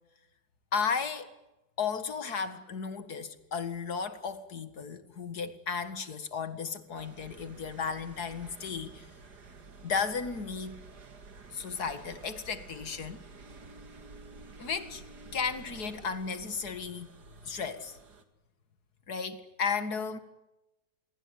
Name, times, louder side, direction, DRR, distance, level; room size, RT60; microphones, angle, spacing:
voice 1, 0.7-1.3 1.8-9.1 9.8-10.8 11.5-13.2 14.6-17.1 17.4-18.0 19.1-20.2, left 5 dB, 70° left, 11 dB, 2.4 m, -34 dB
sound 1, 7.0-18.2, right 3 dB, 75° right, 2.8 m, -51 dB
27.5 x 22.5 x 9.4 m, 0.96 s
omnidirectional pair, 1.7 m